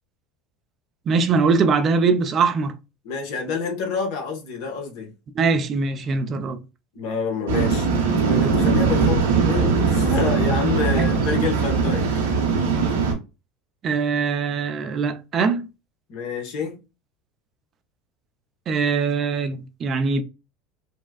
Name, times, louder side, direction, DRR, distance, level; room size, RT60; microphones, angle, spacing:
voice 1, 1.1-2.7 5.3-6.6 10.9-11.1 13.8-15.7 18.7-20.2, right 4 dB, 40° right, 0.6 m, -22 dB
voice 2, 3.0-5.1 6.9-7.9 8.3-12.1 16.1-16.8, left 4 dB, 65° left, 1.4 m, -27 dB
Waves surf, 7.5-13.1, right 5 dB, 90° right, 1.4 m, -20 dB
4.2 x 2.3 x 2.4 m
hypercardioid pair, 85°, 0 cm